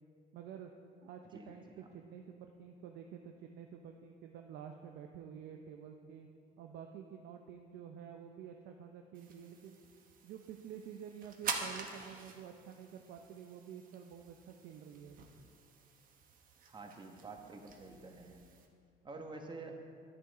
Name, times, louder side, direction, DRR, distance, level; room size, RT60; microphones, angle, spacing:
voice 1, 0.3-0.7 1.0-6.3 6.6-9.8 10.2-15.2, right 8 dB, 80° right, 4 dB, 0.6 m, -50 dB
voice 2, 1.3-1.9 16.7-18.4 19.0-19.8, right 3 dB, 25° right, 3 dB, 1.2 m, -49 dB
sound 1, 9.2-18.7, right 5 dB, 55° right, 1.1 m, -47 dB
10.5 x 9.9 x 4.1 m, 2.4 s
cardioid pair, 110°, 17 cm